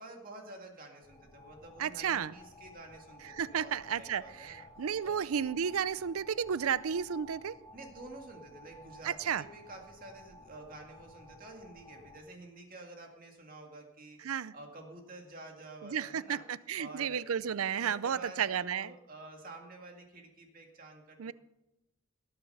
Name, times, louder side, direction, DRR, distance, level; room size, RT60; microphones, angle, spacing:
voice 1, 0.0-4.6 5.0-5.2 7.7-16.4 16.8-17.3 17.8-21.3, right 2 dB, 40° right, 2 dB, 2.1 m, -50 dB
sound 1, 1.0-12.2, left 1 dB, 20° left, 2.2 m, -54 dB
voice 2, 1.8-2.3 3.3-7.6 9.0-9.4 14.2-14.5 15.8-18.9 21.2-21.3, right 8 dB, 85° right, 18 dB, 0.5 m, -33 dB
19.0 x 8.9 x 5.5 m, 0.93 s
head